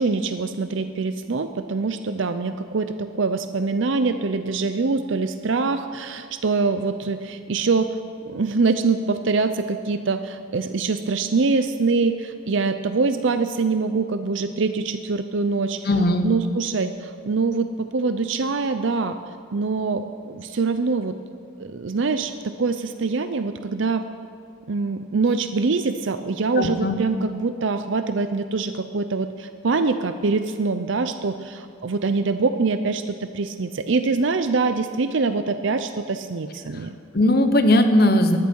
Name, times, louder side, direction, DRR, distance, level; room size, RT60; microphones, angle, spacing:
voice 1, 0.0-7.9 8.3-15.9 16.2-19.2 19.5-21.2 21.6-24.0 24.7-37.0, right 4 dB, 65° right, 9 dB, 0.6 m, -24 dB
voice 2, 15.9-16.3 26.6-27.0 37.1-38.4, left 1 dB, 45° left, 7 dB, 1.1 m, -18 dB
19.0 x 14.0 x 4.6 m, 2.3 s
head